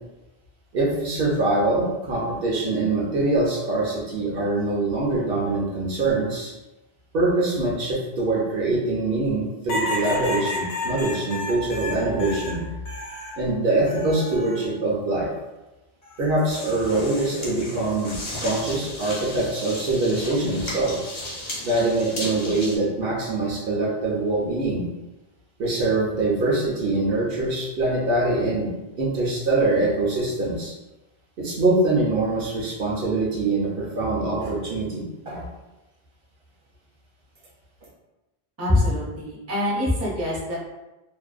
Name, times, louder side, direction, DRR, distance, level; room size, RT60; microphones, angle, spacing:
voice 1, 0.7-6.5 7.1-12.6 13.4-15.3 16.2-18.1 18.4-20.9 21.6-24.8 25.6-28.7 29.0-30.7 31.4-35.4, right 2 dB, 65° right, -4 dB, 0.8 m, -24 dB
sound 1, 9.7-13.4 13.9-14.7 16.0-16.4, left 2 dB, 80° left, 0.9 m, -31 dB
sound 2, 16.5-22.8, left 1 dB, 45° left, 0.6 m, -35 dB
voice 2, 38.6-40.6, left 1 dB, 20° right, -6 dB, 0.5 m, -24 dB
2.5 x 2.1 x 2.3 m, 1.0 s
omnidirectional pair, 1.1 m